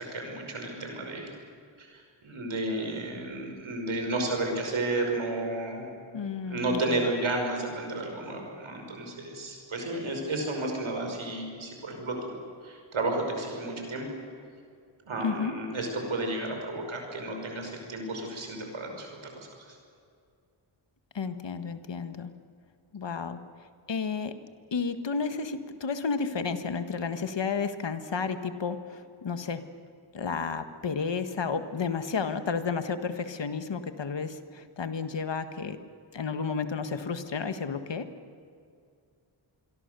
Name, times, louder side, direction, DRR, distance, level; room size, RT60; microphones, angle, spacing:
voice 1, 0.0-1.3 1.8-5.9 6.4-14.1 15.1-19.8, right 2 dB, 85° right, 2 dB, 5.8 m, -32 dB
voice 2, 6.1-6.8 15.2-15.5 21.2-22.3 22.9-23.4 23.9-24.3 24.7-29.6 30.1-35.8 36.1-38.1, left 5 dB, 65° left, 9 dB, 1.6 m, -32 dB
26.5 x 22.5 x 6.9 m, 2.4 s
cardioid pair, 60°, 47 cm